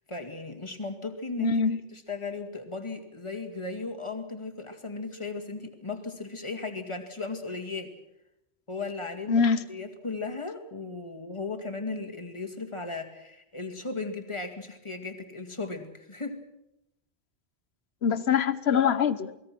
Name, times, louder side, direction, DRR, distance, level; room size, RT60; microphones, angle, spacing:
voice 1, 0.1-1.6 1.9-7.9 8.7-9.4 9.7-16.4 18.1-18.2, left 3 dB, 30° left, 2.3 m, -36 dB
voice 2, 1.4-1.8 9.3-9.6 18.0-19.3, left 6 dB, 80° left, 1.2 m, -24 dB
28.0 x 20.0 x 6.1 m
omnidirectional pair, 1.1 m